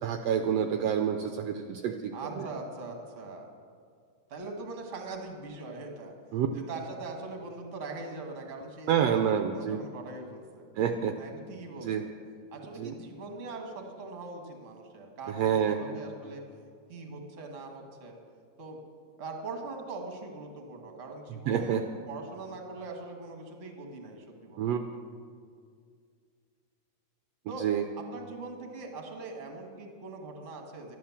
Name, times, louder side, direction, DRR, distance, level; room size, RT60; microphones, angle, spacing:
voice 1, 0.0-2.5 6.3-6.5 8.9-9.8 10.8-11.1 11.8-12.0 12.8-12.9 15.3-16.0 21.5-21.8 24.6-24.8 27.6-27.8, right 8 dB, 75° right, 6 dB, 1.6 m, -28 dB
voice 2, 2.1-3.5 4.3-6.1 6.5-9.2 9.5-10.6 11.1-12.1 12.5-16.4 16.9-18.1 18.6-18.8 19.2-24.8 27.5-27.6 28.0-31.0, right 3 dB, 30° right, 3 dB, 1.5 m, -41 dB
12.5 x 11.0 x 7.2 m, 2.1 s
omnidirectional pair, 3.3 m